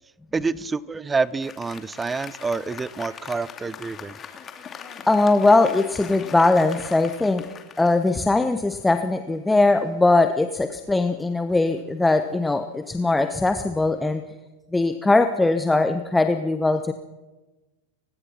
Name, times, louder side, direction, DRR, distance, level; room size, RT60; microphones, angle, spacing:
voice 1, 0.3-4.2, right 4 dB, 15° right, 22 dB, 0.8 m, -27 dB
Applause, 1.2-8.8, left 7 dB, 25° left, 2.6 m, -41 dB
voice 2, 5.1-7.4 7.8-14.2 14.7-16.9, left 2 dB, 5° left, 8 dB, 1.1 m, -20 dB
29.5 x 16.5 x 5.8 m, 1.1 s
figure-of-eight pair, 90°, 0 cm